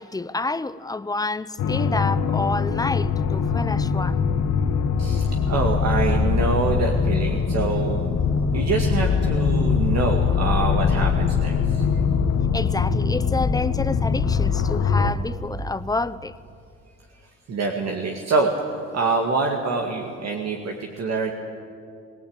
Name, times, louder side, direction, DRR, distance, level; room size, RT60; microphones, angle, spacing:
voice 1, 0.0-4.2 12.5-16.3, left 3 dB, 10° left, 0.7 m, -28 dB
sound 1, 1.6-15.1, left 5 dB, 60° left, 1.5 m, -22 dB
voice 2, 5.0-8.0 8.5-11.9 17.5-21.3, right 4 dB, 60° right, 2.2 m, -25 dB
21.5 x 18.5 x 8.9 m
cardioid pair, 90°, 30 cm